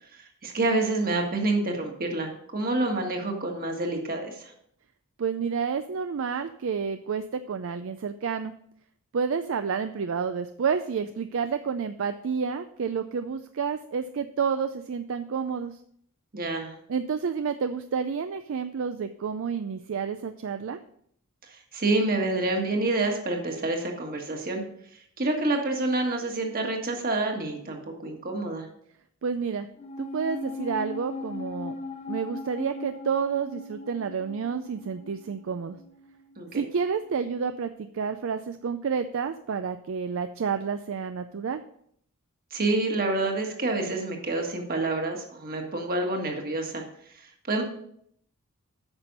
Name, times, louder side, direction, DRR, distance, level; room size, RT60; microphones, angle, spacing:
voice 1, 0.1-4.5 16.3-16.7 21.7-24.6 25.2-28.7 36.4-36.6 42.5-46.8 47.5-47.6, right 2 dB, 40° right, 2 dB, 1.7 m, -28 dB
voice 2, 5.2-8.5 9.1-15.8 16.9-20.8 29.2-29.7 30.0-31.8 32.1-35.8 36.5-41.6, right 6 dB, 60° right, 10 dB, 0.4 m, -30 dB
sound 1, 29.8-36.4 36.6-36.7, left 2 dB, 30° left, 0.7 m, -39 dB
8.8 x 6.0 x 5.3 m, 0.68 s
head